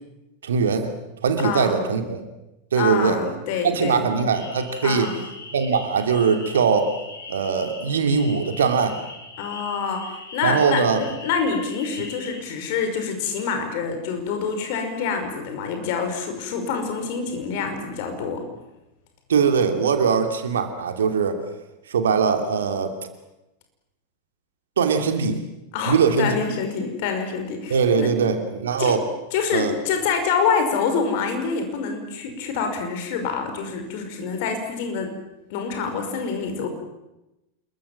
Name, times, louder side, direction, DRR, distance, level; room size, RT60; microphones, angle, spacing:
voice 1, 0.4-0.9 1.2-2.2 2.7-3.2 3.6-5.1 5.5-6.9 7.3-9.0 10.4-11.0 19.3-21.4 21.9-22.9 24.8-25.4 25.9-26.5 27.7-29.0 29.5-29.7, right 6 dB, 65° right, 6 dB, 2.8 m, -21 dB
voice 2, 1.4-1.8 2.8-4.1 4.8-5.2 9.4-18.4 25.7-28.1 28.8-29.0 29.3-35.1 35.5-36.7, left 5 dB, 50° left, 6 dB, 5.5 m, -26 dB
sound 1, 4.3-12.4, left 3 dB, 65° left, 6.7 m, -40 dB
27.5 x 22.5 x 7.6 m, 0.98 s
figure-of-eight pair, 90°, 0 cm